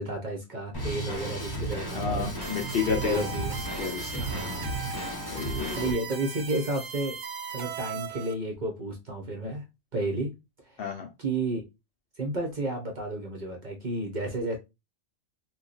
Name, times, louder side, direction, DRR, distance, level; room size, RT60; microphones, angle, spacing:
voice 1, 0.0-2.4 3.0-3.5 4.1-4.7 5.7-7.2 7.5-9.6 9.9-10.3 11.2-11.6 12.2-14.6, right 2 dB, 45° right, 0.7 m, -32 dB
Drum kit, 0.7-5.9, right 1 dB, 20° left, 0.9 m, -34 dB
voice 2, 1.9-3.2 3.8-4.3 5.3-6.0 10.8-11.1, left 6 dB, 60° left, 0.7 m, -30 dB
sound 1, 2.4-8.3, right 6 dB, 70° right, 1.0 m, -38 dB
3.0 x 2.2 x 3.9 m
omnidirectional pair, 1.4 m